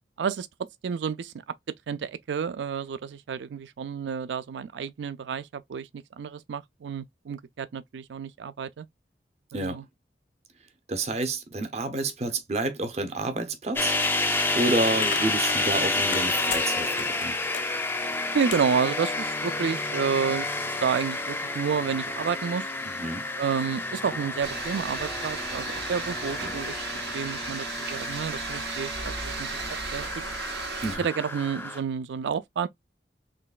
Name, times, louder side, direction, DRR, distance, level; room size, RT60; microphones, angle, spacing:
voice 1, 0.8-1.3 1.9-8.9 9.5-9.8 18.3-20.5 20.8-22.7 23.4-26.8 27.1-29.5 29.9-30.1 31.0-32.7, right 6 dB, 80° right, 0.4 m, -30 dB
voice 2, 10.9-14.0 14.5-17.4 23.0-23.2 30.8-31.1, right 2 dB, 40° right, 0.7 m, -29 dB
sound 1, 13.8-31.8, left 2 dB, 10° left, 0.5 m, -30 dB
sound 2, 15.0-19.7, left 9 dB, 90° left, 0.4 m, -40 dB
sound 3, 24.4-31.0, right 5 dB, 65° right, 1.0 m, -36 dB
3.9 x 3.1 x 2.4 m
head